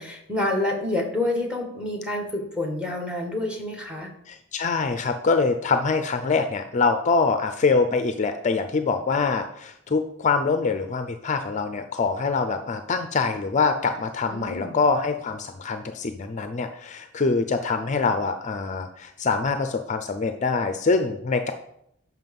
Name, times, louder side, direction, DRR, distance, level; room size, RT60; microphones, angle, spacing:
voice 1, 0.0-4.1 14.3-14.8, left 1 dB, 5° right, 2 dB, 1.6 m, -28 dB
voice 2, 4.3-21.5, left 4 dB, 35° left, 7 dB, 0.5 m, -24 dB
7.5 x 5.9 x 5.4 m, 0.75 s
head